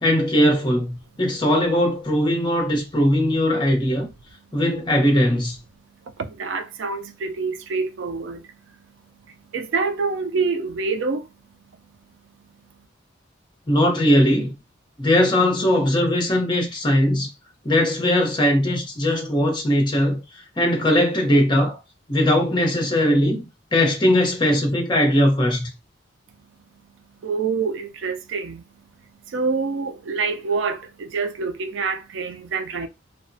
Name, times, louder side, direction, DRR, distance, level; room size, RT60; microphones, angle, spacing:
voice 1, 0.0-4.1 4.5-5.6 13.7-14.5 15.0-17.3 17.6-20.2 20.6-21.8 22.1-23.5 23.7-25.7, left 1 dB, 25° left, 0.7 m, -19 dB
voice 2, 6.0-8.8 9.5-11.3 27.2-28.6 29.3-32.9, right 4 dB, 70° right, 0.4 m, -26 dB
2.9 x 2.1 x 2.6 m
head